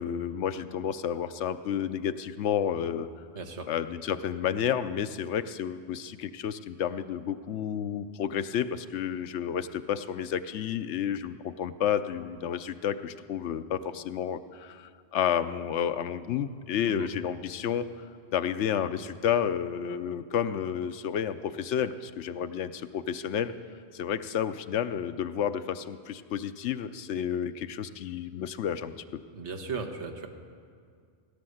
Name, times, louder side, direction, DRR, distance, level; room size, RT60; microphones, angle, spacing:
voice 1, 0.0-3.1 3.7-18.0 18.3-23.5 23.9-29.2, left 9 dB, 85° left, 11 dB, 0.9 m, -31 dB
voice 2, 3.3-3.7 16.9-17.1 29.3-30.3, right 4 dB, 85° right, 5 dB, 1.5 m, -36 dB
17.0 x 10.5 x 7.8 m, 2.2 s
omnidirectional pair, 1.2 m